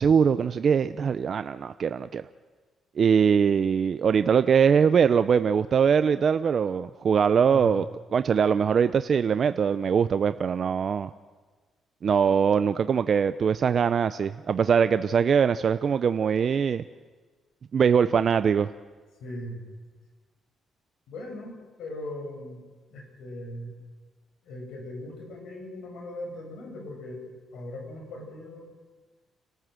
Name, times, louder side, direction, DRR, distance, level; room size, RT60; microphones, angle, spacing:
voice 1, 0.0-2.2 3.0-7.8 8.1-11.1 12.0-16.8 17.7-18.7, right 7 dB, 50° right, 11 dB, 0.6 m, -22 dB
voice 2, 19.2-19.6 21.1-22.6 22.9-23.8 24.4-28.7, left 1 dB, 80° left, 2 dB, 6.7 m, -39 dB
29.0 x 13.0 x 7.7 m, 1.4 s
cardioid pair, 90°, 0 cm